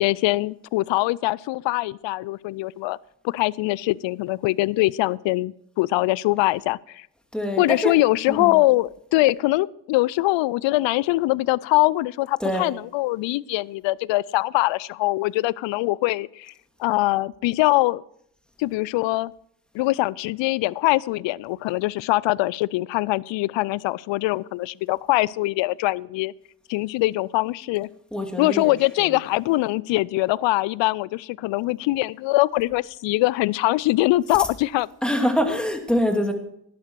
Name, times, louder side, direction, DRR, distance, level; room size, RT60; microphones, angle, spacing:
voice 1, 0.0-3.0 3.2-7.1 7.6-16.5 16.8-18.0 18.6-19.3 19.7-26.3 26.7-27.9 28.4-34.9, left 19 dB, 65° left, 24 dB, 0.5 m, -23 dB
voice 2, 7.3-7.9 8.3-8.6 12.4-12.7 28.1-29.2 35.0-36.3, equal, ahead, 4 dB, 2.5 m, -25 dB
11.0 x 11.0 x 4.6 m, 0.72 s
hypercardioid pair, 45°, 49 cm